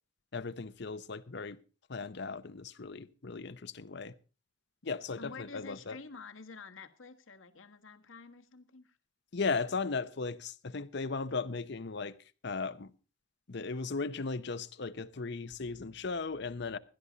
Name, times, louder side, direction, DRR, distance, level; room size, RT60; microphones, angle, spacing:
voice 1, 0.3-1.6 1.9-4.1 4.8-6.0 9.3-12.2 12.4-12.9 13.5-16.8, left 4 dB, 60° left, 0.8 m, -36 dB
voice 2, 5.2-9.0, left 4 dB, 85° left, 1.4 m, -49 dB
16.5 x 11.5 x 4.0 m
head